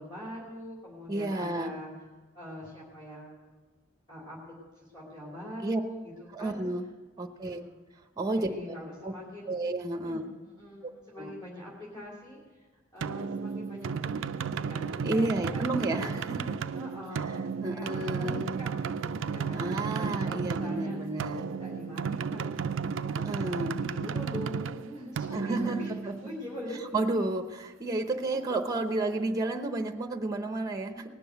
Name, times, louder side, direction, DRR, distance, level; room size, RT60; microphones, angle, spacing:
voice 1, 0.0-1.9 2.3-3.4 4.1-6.6 7.3-7.8 8.3-9.6 10.0-12.7 12.9-16.1 16.7-21.0 21.6-25.9 26.2-27.0, left 1 dB, 15° left, -6 dB, 3.1 m, -43 dB
voice 2, 1.1-1.7 5.6-5.8 6.3-6.9 7.2-7.6 8.2-8.5 9.0-9.1 9.5-10.3 10.8-10.9 11.2-11.3 15.0-16.6 17.6-18.6 19.5-21.6 23.1-23.8 25.3-25.8 26.9-31.1, right 2 dB, 20° right, 5 dB, 0.8 m, -31 dB
sound 1, 13.0-26.6, right 6 dB, 80° right, 0.4 m, -33 dB
18.5 x 7.0 x 7.9 m, 1.3 s
head